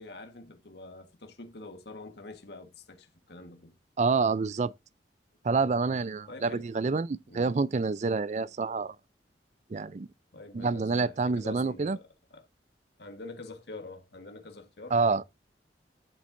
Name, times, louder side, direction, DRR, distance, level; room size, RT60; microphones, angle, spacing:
voice 1, 0.0-3.7 6.3-6.7 7.3-7.6 10.3-12.4 13.0-14.9, left 2 dB, 70° left, 1.4 m, -46 dB
voice 2, 4.0-4.7 5.4-8.9 9.7-10.1 10.5-12.0 14.9-15.2, right 4 dB, 40° right, 0.4 m, -27 dB
12.5 x 7.5 x 2.6 m
head